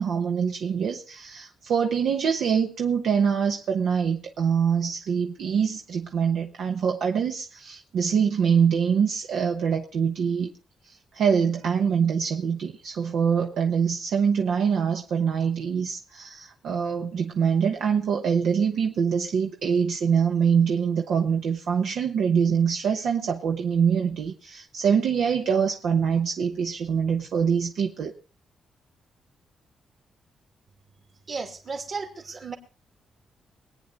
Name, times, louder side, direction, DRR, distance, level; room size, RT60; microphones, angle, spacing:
voice 1, 0.0-10.5 10.8-28.1, right 7 dB, 75° right, 1.1 m, -24 dB
voice 2, 31.3-32.6, right 4 dB, 45° right, 2.6 m, -34 dB
23.0 x 9.3 x 4.0 m
cardioid pair, 95°, 0 cm